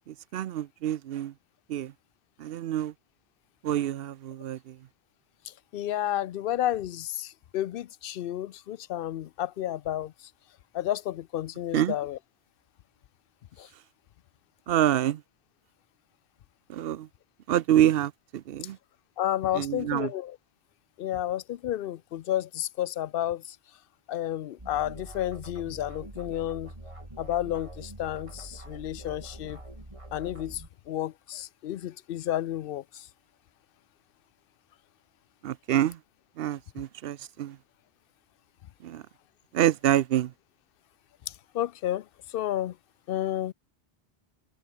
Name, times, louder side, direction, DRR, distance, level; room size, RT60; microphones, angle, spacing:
voice 1, 0.1-1.3 1.7-1.9 2.4-2.9 3.6-4.8 11.7-12.0 14.7-15.2 16.7-17.1 17.5-18.8 19.5-20.1 35.4-36.0 36.4-37.6 38.8-39.0 39.5-40.3, right 12 dB, 70° right, 0.8 m, -27 dB
voice 2, 5.7-10.1 10.7-12.2 13.6-13.7 19.2-20.4 21.0-23.6 24.1-26.7 27.2-29.6 30.1-33.1 41.5-42.0 42.3-42.7 43.1-43.5, left 12 dB, 65° left, 0.7 m, -31 dB
sound 1, 24.6-30.7, right 1 dB, 30° right, 4.5 m, -44 dB
omnidirectional pair, 1.1 m